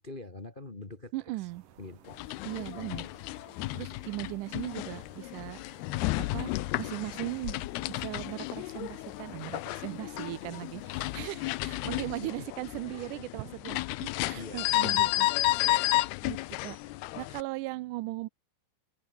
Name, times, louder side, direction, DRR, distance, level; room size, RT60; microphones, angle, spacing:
voice 1, 0.0-1.1 1.8-2.2 11.9-12.1 12.9-13.2 14.3-14.6, left 2 dB, 45° left, 0.6 m, -44 dB
voice 2, 1.1-1.6 2.5-3.1 3.7-5.6 6.3-6.5 6.8-16.4 16.6-16.8 17.2-18.3, right 19 dB, 90° right, 1.8 m, -38 dB
sound 1, 1.5-11.9, right 10 dB, 65° right, 3.4 m, -58 dB
sound 2, 2.1-17.4, left 19 dB, 90° left, 2.8 m, -32 dB
omnidirectional pair, 4.5 m